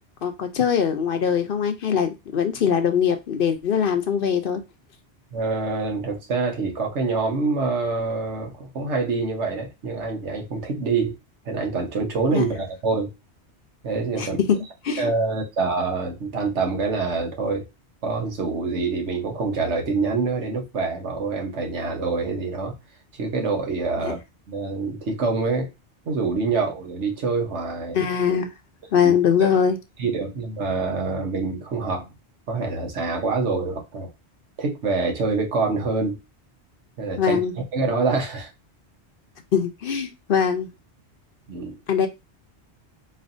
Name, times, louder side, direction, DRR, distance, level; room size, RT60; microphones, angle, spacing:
voice 1, 0.2-4.6 12.3-12.4 14.2-14.6 14.8-15.1 24.0-24.1 27.9-28.5 28.9-29.8 37.2-37.5 39.5-40.7 41.9-42.1, left 7 dB, 60° left, 0.8 m, -22 dB
voice 2, 5.3-11.2 11.4-13.1 13.8-14.6 15.0-17.7 18.0-22.7 23.2-24.2 24.5-25.7 26.0-28.0 29.0-29.1 29.4-29.5 30.0-32.1 32.5-34.1 34.6-36.2 37.0-37.4 37.7-38.5 41.5-41.8, right 4 dB, 80° right, 1.4 m, -26 dB
4.3 x 3.2 x 2.6 m
omnidirectional pair, 1.2 m